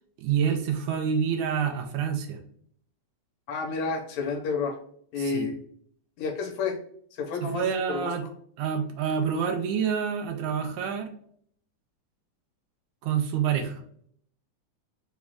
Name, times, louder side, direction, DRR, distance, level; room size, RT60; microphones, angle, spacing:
voice 1, 0.2-2.4 5.2-5.5 7.4-8.2 8.6-11.1 13.0-13.8, right 7 dB, 85° right, 5 dB, 2.1 m, -27 dB
voice 2, 3.5-4.8 5.1-5.6 6.2-6.8 7.1-8.2, left 4 dB, 75° left, 3 dB, 1.9 m, -30 dB
5.3 x 2.4 x 3.5 m, 0.62 s
omnidirectional pair, 3.5 m